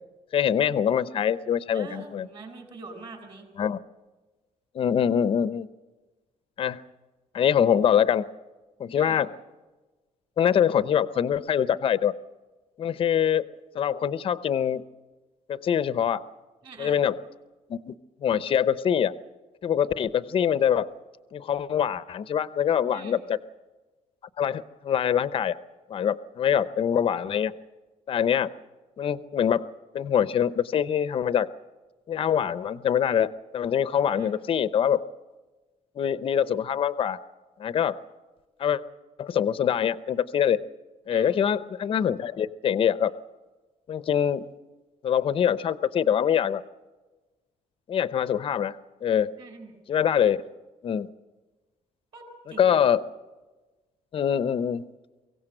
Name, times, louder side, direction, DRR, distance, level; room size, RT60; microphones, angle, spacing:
voice 1, 0.3-2.3 3.6-3.8 4.7-5.7 6.6-6.8 7.3-8.2 8.8-9.3 10.4-12.1 12.8-13.4 13.7-14.8 15.5-16.2 16.8-17.2 17.7-17.9 18.2-19.1 19.6-20.9 21.3-23.4 24.4-25.6 25.9-27.5 28.1-28.5 29.0-29.7 29.9-31.5 32.1-35.0 36.0-37.2 37.6-38.0 38.6-38.8 39.2-40.6 41.1-43.1 43.9-44.5 45.0-46.6 47.9-48.7 49.0-49.3 49.9-50.4 50.8-51.1 52.6-53.0 54.1-54.9, left 8 dB, 40° left, 15 dB, 0.6 m, -24 dB
voice 2, 1.7-3.5 8.9-9.2 16.6-17.0 22.9-23.2 34.0-34.4 41.1-41.4 49.4-49.7 52.1-52.8, right 3 dB, 40° right, 5 dB, 4.6 m, -44 dB
23.5 x 16.5 x 7.7 m, 1.2 s
cardioid pair, 170°, 14 cm